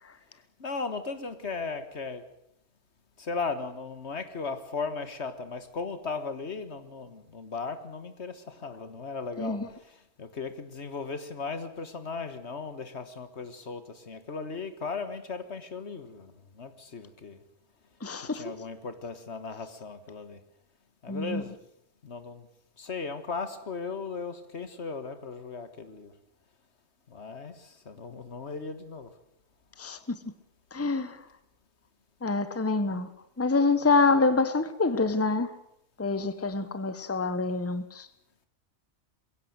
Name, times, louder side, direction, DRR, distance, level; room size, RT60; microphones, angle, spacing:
voice 1, 0.6-2.2 3.2-9.6 9.9-17.4 18.2-20.4 21.0-21.6 22.0-22.5 22.8-26.1 27.1-29.1, left 4 dB, 70° left, 11 dB, 1.9 m, -37 dB
voice 2, 18.0-18.4 21.1-21.4 29.8-30.0 30.7-31.2 32.2-33.1 33.4-35.5 36.0-38.1, left 3 dB, 15° left, 12 dB, 1.1 m, -26 dB
22.0 x 16.5 x 7.9 m, 0.78 s
omnidirectional pair, 1.2 m